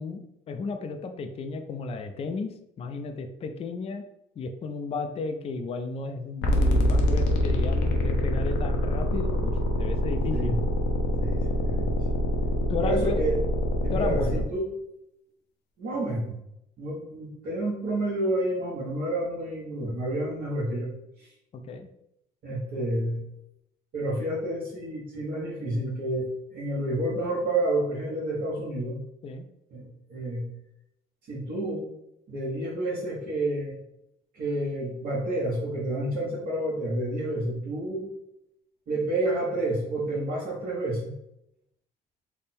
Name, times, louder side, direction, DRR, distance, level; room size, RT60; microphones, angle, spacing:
voice 1, 0.0-4.0 4.4-10.6 12.7-13.2 13.9-14.4 21.5-21.9 29.2-29.4, left 4 dB, 35° left, 7 dB, 0.4 m, -33 dB
sound 1, 6.4-14.4, left 1 dB, 85° left, 0.7 m, -25 dB
voice 2, 11.2-11.9 12.8-13.3 13.8-14.6 15.8-16.3 16.8-20.9 21.2-21.3 22.4-23.2 23.9-29.0 29.7-30.5 31.3-31.8 32.3-33.8 34.3-38.1 38.9-41.1, right 1 dB, 60° right, -8 dB, 1.2 m, -29 dB
3.5 x 2.1 x 4.2 m, 0.82 s
cardioid pair, 110°, 17 cm